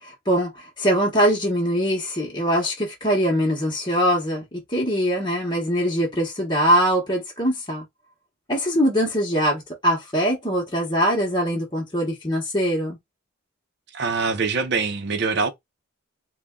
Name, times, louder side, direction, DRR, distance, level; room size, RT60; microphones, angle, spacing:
voice 1, 0.0-7.8 8.5-13.0, equal, 20° left, 1.0 m, -22 dB
voice 2, 13.9-15.5, right 4 dB, 55° right, 0.6 m, -24 dB
3.5 x 2.2 x 3.6 m
head